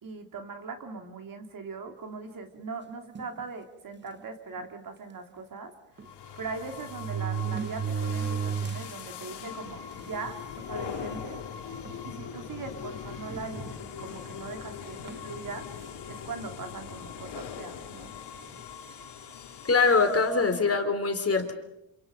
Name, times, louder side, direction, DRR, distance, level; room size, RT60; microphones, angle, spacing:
voice 1, 0.0-5.7 6.4-11.4 12.0-15.7 16.1-18.1, right 4 dB, 45° right, 5 dB, 3.4 m, -40 dB
sound 1, 3.2-3.4 4.2-4.3 4.6-4.7 6.0-6.1 6.8-9.0 9.5-9.6 10.4-10.5 10.9-11.2 11.8-12.0 13.3-14.1 15.1-15.3, right 6 dB, 25° right, 0.9 m, -33 dB
sound 2, 6.0-20.8, left 7 dB, 60° left, 3.0 m, -41 dB
voice 2, 19.7-21.5, left 4 dB, 30° left, 7 dB, 3.5 m, -23 dB
27.5 x 27.5 x 5.4 m, 0.85 s
cardioid pair, 105°, 45 cm